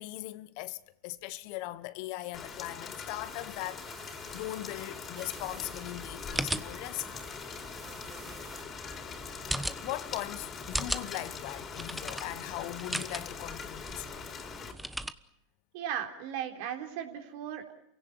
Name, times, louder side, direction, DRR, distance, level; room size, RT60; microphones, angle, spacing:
voice 1, 0.0-7.1 9.8-14.2, left 17 dB, 60° left, 1.1 m, -39 dB
Rain, 2.3-14.7, left 5 dB, 30° left, 4.1 m, -42 dB
sound 1, 3.2-8.6, right 6 dB, 30° right, 4.2 m, -53 dB
sound 2, 5.4-15.1, right 1 dB, 5° right, 1.1 m, -39 dB
voice 2, 15.7-17.7, right 9 dB, 65° right, 3.7 m, -36 dB
28.5 x 17.0 x 9.4 m
hypercardioid pair, 95°, 0 cm